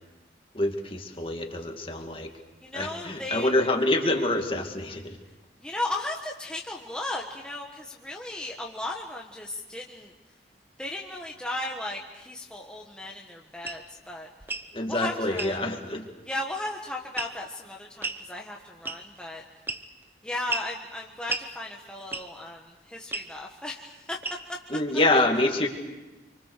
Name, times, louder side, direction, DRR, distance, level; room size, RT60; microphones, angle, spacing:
voice 1, 0.5-2.3 2.7-5.2 14.7-16.1 24.7-25.7, left 2 dB, 30° left, 4 dB, 2.3 m, -26 dB
voice 2, 2.6-3.5 5.6-10.1 10.8-14.3 14.9-15.6 16.2-19.4 20.2-24.2 24.5-24.6, left 2 dB, 5° left, -1 dB, 1.4 m, -35 dB
sound 1, 13.6-13.8 14.4-14.7 15.4-15.6 17.2-17.5 18.0-18.2 18.9-19.2 19.7-20.0 20.5-20.7 21.3-21.5 22.1-22.4 23.1-23.3 24.2-24.6, right 3 dB, 10° right, 0.9 m, -33 dB
27.5 x 25.0 x 6.7 m, 1.1 s
head